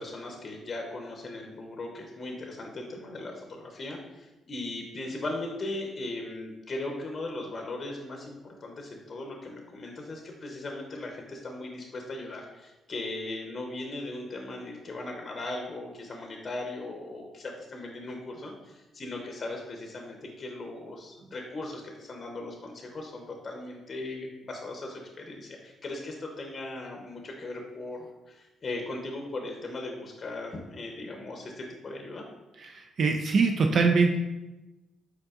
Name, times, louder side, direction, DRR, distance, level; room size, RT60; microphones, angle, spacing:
voice 1, 0.0-32.3, left 2 dB, 40° left, 1 dB, 0.6 m, -38 dB
voice 2, 32.6-34.2, right 4 dB, 55° right, 4 dB, 0.3 m, -23 dB
5.2 x 3.7 x 2.4 m, 1.0 s
cardioid pair, 90°, 0 cm